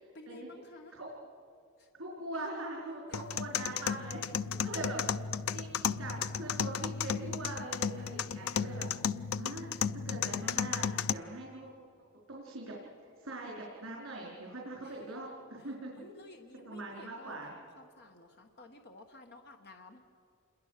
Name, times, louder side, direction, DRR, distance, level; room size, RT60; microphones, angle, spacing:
voice 1, 0.1-1.0 1.8-1.9 3.1-3.3 4.4-5.1 7.9-8.2 14.8-15.2 15.6-20.0, left 1 dB, 50° left, 4 dB, 1.3 m, -54 dB
voice 2, 1.9-4.2 4.5-11.7 12.3-12.7 13.2-16.0 16.6-17.5, right 2 dB, 70° right, -3 dB, 4.6 m, -42 dB
sound 1, 3.1-11.1, left 7 dB, 85° left, 0.5 m, -34 dB
28.0 x 21.5 x 6.7 m, 2.6 s
head